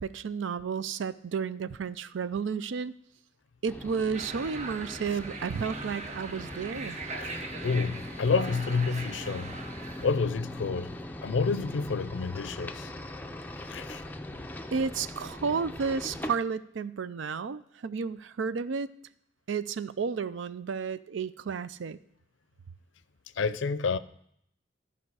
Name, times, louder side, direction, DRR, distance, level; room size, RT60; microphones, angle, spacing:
voice 1, 0.0-2.9 3.6-7.0 14.7-18.9 19.5-22.0, right 5 dB, 85° right, 0.4 m, -32 dB
sound 1, 3.7-16.4, left 1 dB, 10° left, 0.4 m, -41 dB
sound 2, 4.1-10.3, right 3 dB, 35° right, 0.7 m, -41 dB
voice 2, 7.6-9.5 10.0-10.9 11.2-12.9 13.7-14.0 23.4-24.0, left 4 dB, 85° left, 0.5 m, -29 dB
14.5 x 5.4 x 4.8 m
head